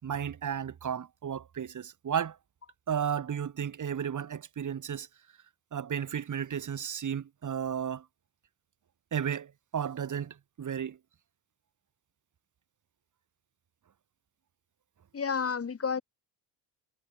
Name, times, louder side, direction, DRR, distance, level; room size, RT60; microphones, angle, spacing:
voice 1, 0.0-2.4 2.9-5.1 5.7-8.0 9.1-11.0, right 8 dB, 45° right, 3.7 m, -33 dB
voice 2, 15.1-16.0, left 6 dB, 35° left, 3.8 m, -30 dB
supercardioid pair, 75°, 41 cm